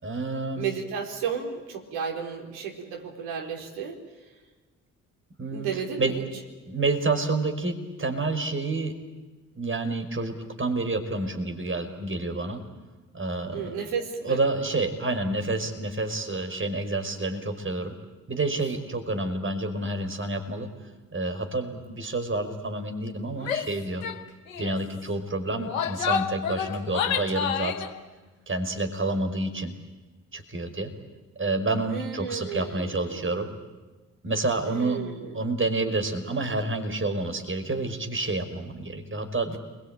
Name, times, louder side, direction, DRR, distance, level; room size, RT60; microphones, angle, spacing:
voice 1, 0.0-0.6 5.4-5.7 6.0-6.1 6.7-8.9 9.6-12.6 13.1-13.8 14.2-17.9 18.3-20.7 21.1-24.1 24.6-27.8 28.5-29.7 30.3-30.9 31.4-33.5 34.2-35.0 35.3-39.6, right 2 dB, 30° right, 6 dB, 5.2 m, -29 dB
voice 2, 0.6-4.0 5.5-6.2 13.5-14.4 31.9-33.4 34.6-35.4, right 6 dB, 75° right, 1 dB, 4.2 m, -33 dB
Female speech woman speaking / Yell, 23.4-23.7 24.0-24.2 24.5-24.8 25.5-27.9, left 7 dB, 85° left, 1.3 m, -29 dB
29.0 x 22.5 x 9.1 m, 1.2 s
hypercardioid pair, 40°, 39 cm